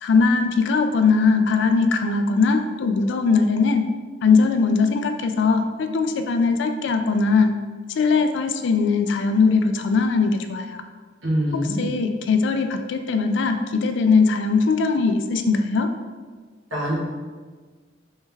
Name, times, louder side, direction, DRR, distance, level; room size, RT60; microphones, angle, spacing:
voice 1, 0.0-3.9 4.2-7.5 8.0-10.8 11.8-15.9, left 4 dB, 65° left, 7 dB, 0.3 m, -20 dB
voice 2, 11.2-11.9 16.7-17.0, equal, 75° right, -7 dB, 1.0 m, -24 dB
3.3 x 3.2 x 3.3 m, 1.5 s
head